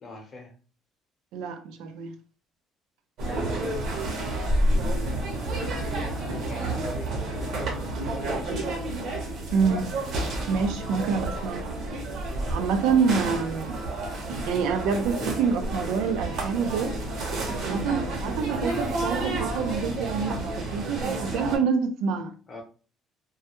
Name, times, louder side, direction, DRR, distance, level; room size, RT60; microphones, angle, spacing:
voice 1, 0.0-0.5 3.2-4.2 4.7-8.8 17.8-18.1 22.5-22.6, left 2 dB, 35° left, 0.7 m, -42 dB
voice 2, 1.3-2.1 9.5-9.9 10.5-11.7 12.5-13.8 14.5-16.9 17.6-22.3, right 6 dB, 85° right, 0.4 m, -27 dB
sound 1, 3.2-21.6, right 2 dB, 60° right, 0.8 m, -30 dB
2.2 x 2.1 x 2.9 m
cardioid pair, 135°, 0 cm